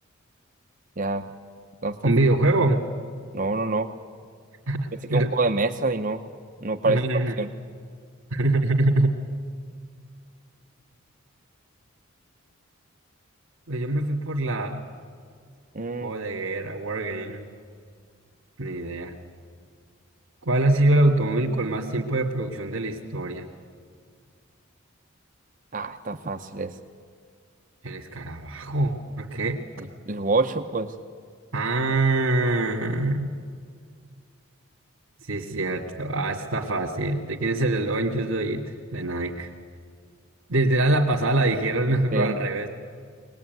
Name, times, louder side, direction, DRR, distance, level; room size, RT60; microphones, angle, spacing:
voice 1, 1.0-1.3 1.8-2.0 3.3-3.9 5.1-6.2 6.6-7.0 7.4-7.5 15.7-16.1 25.7-26.7 30.1-30.9 42.1-42.4, right 3 dB, 40° right, 6 dB, 0.7 m, -26 dB
voice 2, 2.0-2.8 4.7-5.3 6.8-7.4 8.3-9.1 13.7-14.8 16.0-17.5 18.6-19.1 20.4-23.5 27.8-29.6 31.5-33.3 35.2-39.5 40.5-42.7, right 2 dB, 70° right, -2 dB, 1.8 m, -24 dB
23.0 x 19.5 x 9.3 m, 2.1 s
head